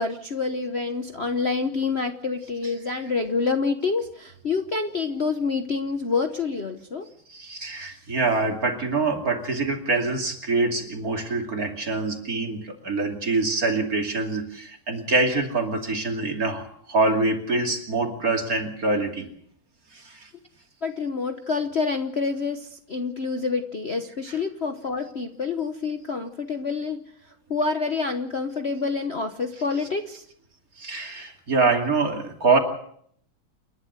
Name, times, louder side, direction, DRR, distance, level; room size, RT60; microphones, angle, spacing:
voice 1, 0.0-7.1 20.8-27.0 27.5-30.2, left 4 dB, 40° left, 6 dB, 1.1 m, -27 dB
voice 2, 7.3-19.3 19.9-20.3 30.8-32.6, right 3 dB, 45° right, 3 dB, 3.0 m, -25 dB
29.0 x 11.5 x 8.0 m, 0.66 s
omnidirectional pair, 2.2 m